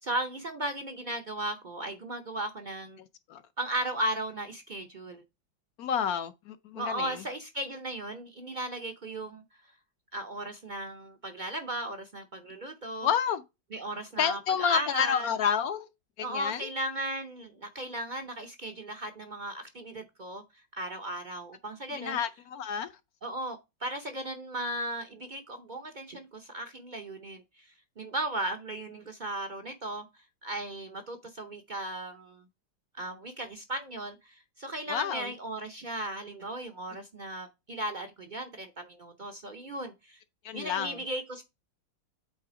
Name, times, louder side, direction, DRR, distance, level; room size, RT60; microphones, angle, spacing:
voice 1, 0.0-3.0 3.6-5.2 6.7-9.4 10.1-13.1 13.7-15.3 16.2-20.4 20.7-22.2 23.2-32.4 32.9-40.2 40.5-41.4, right 1 dB, 65° right, 0.4 m, -36 dB
voice 2, 5.8-7.2 13.0-13.4 14.2-15.9 16.2-16.7 21.9-22.9 34.9-35.3 40.4-41.0, left 8 dB, 70° left, 0.9 m, -29 dB
8.3 x 3.4 x 4.9 m
omnidirectional pair, 2.0 m